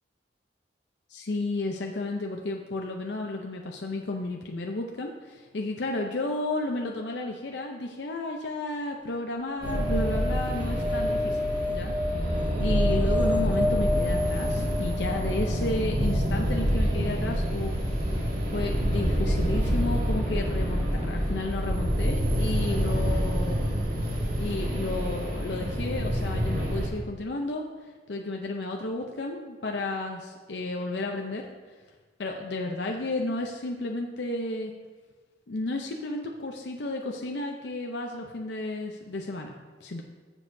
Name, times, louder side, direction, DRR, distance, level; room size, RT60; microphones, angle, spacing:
voice 1, 1.1-11.9 12.6-17.8 18.1-18.2 18.5-23.6 24.4-27.6 28.1-31.4 32.2-34.7 35.5-39.5 39.8-40.0, left 2 dB, 75° left, 1 dB, 0.7 m, -32 dB
sound 1, 9.6-15.8 18.1-18.2 18.4-18.5, left 2 dB, 10° right, 0.3 m, -30 dB
sound 2, 9.6-26.9, equal, 60° right, 2.2 m, -27 dB
14.0 x 7.2 x 2.7 m, 1.4 s
head